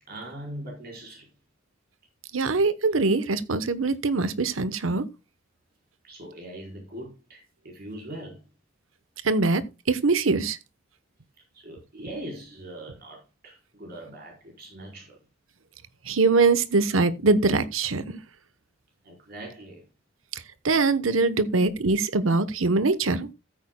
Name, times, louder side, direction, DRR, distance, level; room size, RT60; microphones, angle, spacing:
voice 1, 0.1-1.3 6.0-8.4 11.5-15.2 19.0-19.8, right 1 dB, 50° right, 4.6 m, -41 dB
voice 2, 2.3-5.0 9.2-10.6 16.0-18.2 20.3-23.3, right 3 dB, 90° right, 1.0 m, -23 dB
14.5 x 9.0 x 2.2 m
head